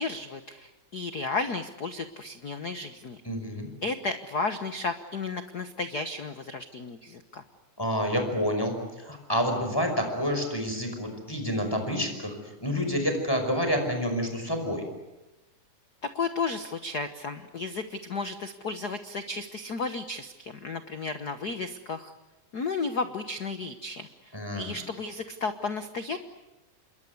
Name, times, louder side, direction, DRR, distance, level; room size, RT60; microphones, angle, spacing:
voice 1, 0.0-3.2 3.8-7.4 16.0-22.1 22.5-26.2, left 3 dB, 70° left, 9 dB, 0.9 m, -33 dB
voice 2, 3.2-3.7 7.8-12.4 12.6-14.8 24.3-24.7, equal, 5° left, 5 dB, 5.2 m, -28 dB
27.5 x 22.0 x 9.5 m, 1.0 s
omnidirectional pair, 3.5 m